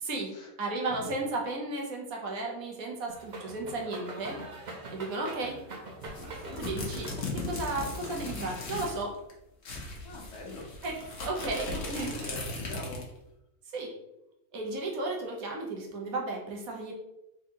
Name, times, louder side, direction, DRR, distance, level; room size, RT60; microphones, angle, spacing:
voice 1, 0.6-4.4 4.9-5.6 6.6-9.1 10.8-11.0 11.2-12.3 13.7-13.9 14.5-16.9, right 2 dB, 70° right, 0 dB, 1.3 m, -34 dB
sound 1, 3.1-8.1, right 2 dB, 40° right, 0.6 m, -43 dB
sound 2, 6.0-9.0 9.3-9.4 9.6-13.2, left 2 dB, 50° left, 1.1 m, -37 dB
voice 2, 10.0-10.7 11.9-13.1, left 2 dB, 85° left, -1 dB, 1.5 m, -43 dB
4.0 x 3.6 x 2.9 m, 0.89 s
omnidirectional pair, 1.6 m